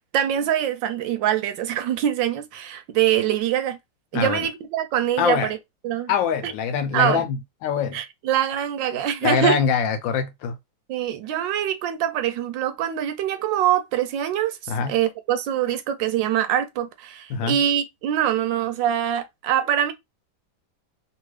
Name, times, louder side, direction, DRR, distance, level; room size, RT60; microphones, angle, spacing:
voice 1, 0.1-3.8 4.1-5.6 5.8-6.1 6.4-6.5 6.9-7.2 7.9-9.6 10.9-19.9, right 10 dB, 75° right, 1.2 m, -24 dB
voice 2, 4.1-4.5 5.2-5.5 6.1-8.0 9.2-10.5 14.7-14.9 17.3-17.6, left 6 dB, 75° left, 1.3 m, -23 dB
2.9 x 2.9 x 3.1 m
omnidirectional pair, 2.1 m